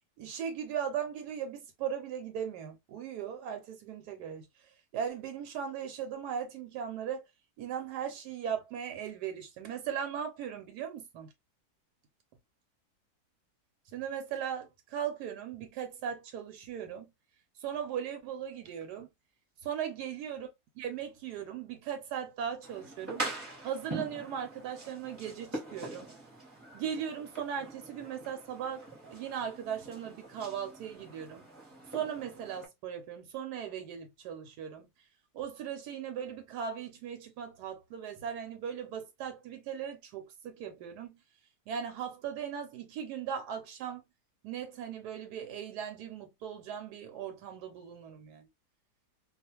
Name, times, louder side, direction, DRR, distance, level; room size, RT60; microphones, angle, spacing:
voice 1, 0.2-4.5 4.9-7.3 7.6-11.3 13.9-17.1 17.6-19.1 19.6-20.5 20.8-23.3 23.6-26.1 26.7-31.5 31.9-34.9 35.3-41.2 41.7-44.0 44.4-48.5, right 8 dB, 85° right, 1.1 m, -38 dB
sound 1, 22.6-32.7, right 2 dB, 10° right, 0.8 m, -43 dB
2.4 x 2.4 x 2.8 m
omnidirectional pair, 1.7 m